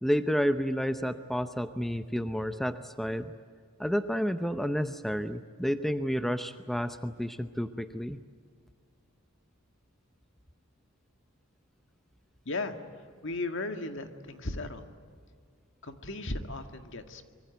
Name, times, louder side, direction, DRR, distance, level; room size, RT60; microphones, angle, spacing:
voice 1, 0.0-3.3 3.8-8.2, equal, ahead, 9 dB, 0.7 m, -30 dB
voice 2, 12.5-12.8 13.2-14.8 15.8-17.3, left 2 dB, 60° left, 7 dB, 1.9 m, -36 dB
25.0 x 23.5 x 9.2 m, 2.1 s
head